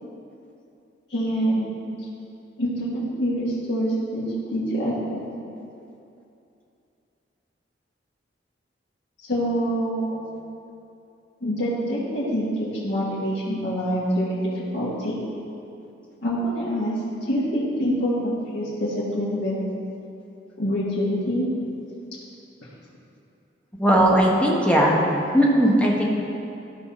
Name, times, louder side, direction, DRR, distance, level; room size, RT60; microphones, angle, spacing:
voice 1, 1.1-1.9 2.6-5.2 9.3-10.2 11.4-15.1 16.2-16.9 17.3-19.6 20.6-21.5, equal, 85° left, -9 dB, 1.7 m, -25 dB
voice 2, 23.8-25.0 25.3-26.0, equal, 5° left, -3 dB, 1.3 m, -18 dB
13.5 x 5.7 x 4.3 m, 2.7 s
head